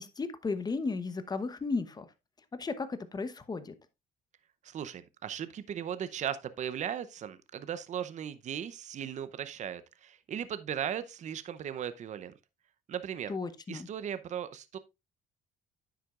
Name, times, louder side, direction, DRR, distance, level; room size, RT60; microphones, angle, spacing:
voice 1, 0.0-2.1 2.5-3.7 13.3-13.9, left 4 dB, 25° left, 1.0 m, -34 dB
voice 2, 4.7-12.3 12.9-13.4 13.7-14.8, right 9 dB, 45° right, 0.7 m, -37 dB
10.0 x 7.5 x 2.4 m
cardioid pair, 110°, 17 cm